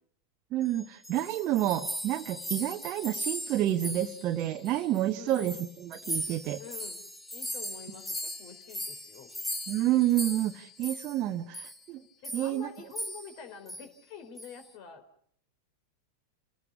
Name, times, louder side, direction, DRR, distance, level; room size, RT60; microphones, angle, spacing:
voice 1, 0.5-6.6 9.7-12.0 12.3-12.7, right 13 dB, 35° right, 4 dB, 1.2 m, -29 dB
sound 1, 0.8-5.0 5.3-11.2 11.5-11.8 12.2-12.6 12.9-13.4 13.7-13.9 14.4-14.7, equal, 5° left, 2.5 m, -38 dB
voice 2, 5.1-5.5 6.6-7.0 7.3-9.3 11.3-11.5 12.2-15.0, left 7 dB, 45° left, 9 dB, 4.0 m, -47 dB
29.0 x 18.5 x 7.1 m, 0.63 s
figure-of-eight pair, 90°, 0 cm